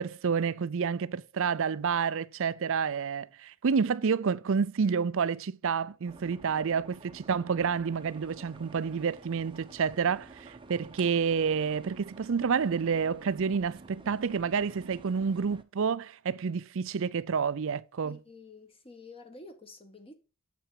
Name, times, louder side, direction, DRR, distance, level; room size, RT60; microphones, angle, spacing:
voice 1, 0.0-18.2, right 6 dB, 60° right, 0.5 m, -29 dB
sound 1, 6.1-15.6, right 3 dB, 25° right, 0.7 m, -51 dB
voice 2, 18.0-20.1, left 3 dB, 25° left, 1.4 m, -49 dB
7.8 x 5.9 x 4.9 m
head